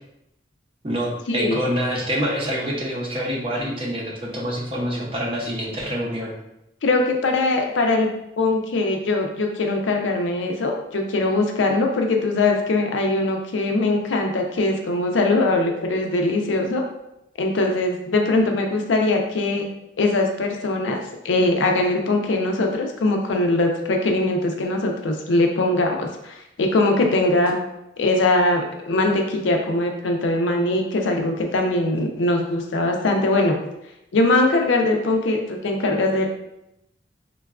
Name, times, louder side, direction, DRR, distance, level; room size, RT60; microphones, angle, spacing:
voice 1, 0.8-6.3, equal, 30° right, -2 dB, 0.6 m, -26 dB
voice 2, 6.8-8.1 8.4-16.8 17.4-19.7 20.0-21.0 21.2-27.6 28.0-33.6 34.1-36.3, left 2 dB, 85° left, 3 dB, 0.5 m, -21 dB
3.8 x 2.2 x 2.3 m, 0.86 s
head